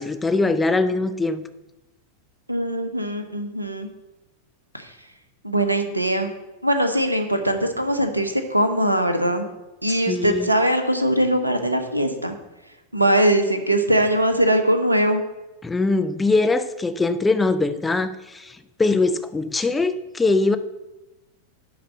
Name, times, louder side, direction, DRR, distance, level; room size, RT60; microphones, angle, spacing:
voice 1, 0.0-1.4 10.1-10.5 15.6-20.6, left 3 dB, 10° left, 0.6 m, -22 dB
voice 2, 2.5-3.9 4.7-4.9 5.4-6.3 6.6-9.5 9.8-12.3 12.9-15.2, right 1 dB, 85° right, 1.0 m, -21 dB
11.5 x 4.1 x 7.4 m
figure-of-eight pair, 90°, 0 cm